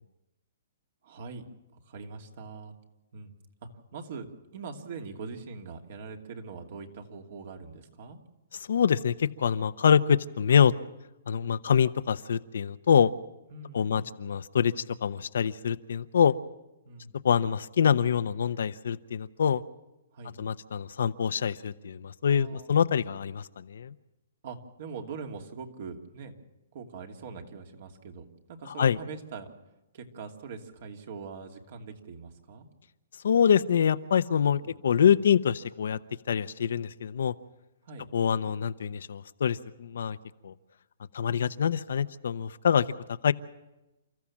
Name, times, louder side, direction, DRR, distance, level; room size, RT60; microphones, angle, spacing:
voice 1, 1.0-1.4 1.9-2.7 3.1-3.3 3.6-4.3 4.5-8.2 13.5-14.1 16.8-17.2 20.1-20.4 22.2-22.7 24.4-26.3 26.7-29.5 29.9-32.7 34.6-34.8 37.8-38.1, right 5 dB, 55° right, 4 dB, 2.6 m, -42 dB
voice 2, 8.7-10.7 11.3-13.1 13.7-14.7 15.0-16.3 17.2-19.6 20.4-23.9 28.8-29.0 33.2-36.0 36.3-37.3 38.1-40.2 40.4-40.5 41.1-42.9 43.2-43.3, left 7 dB, 75° left, 12 dB, 0.8 m, -25 dB
29.5 x 14.0 x 7.3 m, 1.0 s
hypercardioid pair, 155°, 0 cm